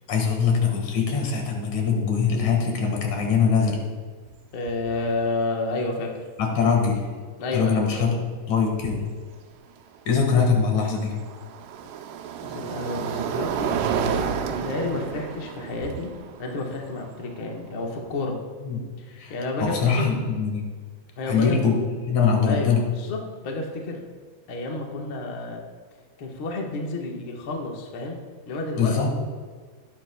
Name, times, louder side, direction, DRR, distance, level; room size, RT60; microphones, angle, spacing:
voice 1, 0.1-3.8 6.4-7.1 7.5-8.2 8.5-9.0 10.1-11.2 18.6-18.8 19.2-19.3 19.6-20.6 21.3-22.8 28.8-29.1, left 6 dB, 55° left, 1 dB, 2.6 m, -22 dB
sound 1, 4.3-4.4 4.7-5.1 6.9-7.0 10.0-18.1, right 8 dB, 90° right, 2.9 m, -31 dB
voice 2, 4.5-6.3 7.4-7.9 12.4-16.1 16.4-18.4 19.0-20.1 21.2-21.6 22.5-22.7 23.0-24.0 24.5-25.6 26.2-28.2 28.4-29.0, left 2 dB, 80° left, 0 dB, 1.1 m, -30 dB
17.5 x 10.0 x 2.3 m, 1.6 s
omnidirectional pair, 4.7 m